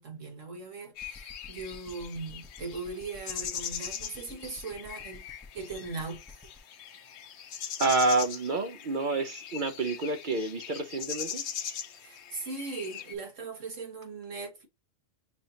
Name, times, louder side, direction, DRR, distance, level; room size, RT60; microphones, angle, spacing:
voice 1, 0.0-6.2 12.0-14.7, right 3 dB, 85° right, 1.9 m, -39 dB
sound 1, 1.0-13.2, left 8 dB, 70° left, 0.9 m, -41 dB
sound 2, 1.0-6.6, left 3 dB, ahead, 0.6 m, -50 dB
voice 2, 7.8-11.4, right 3 dB, 55° right, 0.6 m, -28 dB
6.2 x 2.7 x 2.7 m
omnidirectional pair, 1.3 m